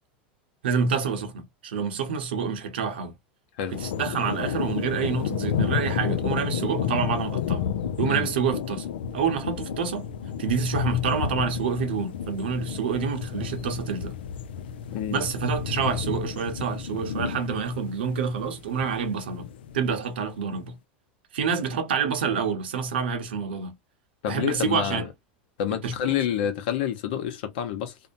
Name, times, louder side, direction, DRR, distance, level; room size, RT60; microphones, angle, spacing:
voice 1, 0.6-3.1 3.7-7.6 8.0-8.9 9.1-10.1 10.4-14.1 15.1-20.8 21.3-23.7 24.3-25.1 25.8-26.1, right 6 dB, 90° right, 0.9 m, -27 dB
sound 1, 3.7-19.8, left 8 dB, 90° left, 0.4 m, -31 dB
voice 2, 14.9-15.3 24.2-25.1 25.6-28.0, left 9 dB, 70° left, 0.9 m, -28 dB
2.7 x 2.1 x 2.6 m
supercardioid pair, 115°, 5 cm